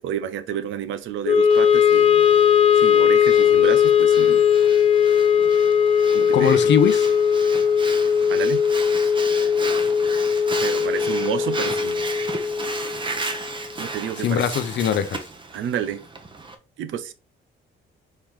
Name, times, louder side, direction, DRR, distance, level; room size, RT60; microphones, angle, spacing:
voice 1, 0.0-2.3 2.7-4.4 6.1-6.7 8.3-8.6 10.6-12.1 13.8-14.5 15.5-16.0 16.8-17.1, right 9 dB, 75° right, 0.6 m, -30 dB
Wind instrument woodwind instrument, 1.2-13.5, left 8 dB, 30° left, 0.4 m, -19 dB
Breathing, 1.5-16.5, right 3 dB, 25° right, 0.9 m, -35 dB
voice 2, 6.3-7.0 14.2-15.2, left 8 dB, 65° left, 0.7 m, -21 dB
4.5 x 3.1 x 3.6 m
cardioid pair, 90°, 20 cm